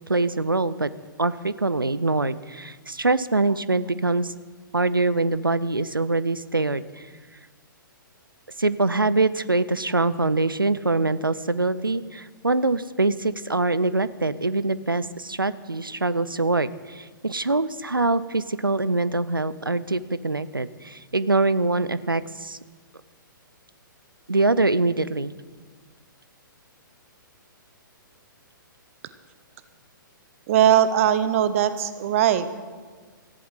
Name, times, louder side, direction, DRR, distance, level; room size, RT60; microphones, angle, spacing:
voice 1, 0.1-0.9 1.2-4.3 4.7-7.1 8.6-22.6 24.3-25.3, right 3 dB, 85° right, 17 dB, 0.7 m, -24 dB
voice 2, 30.5-32.5, right 10 dB, 40° right, 13 dB, 1.0 m, -20 dB
18.0 x 14.5 x 4.9 m, 1.5 s
figure-of-eight pair, 120°, 11 cm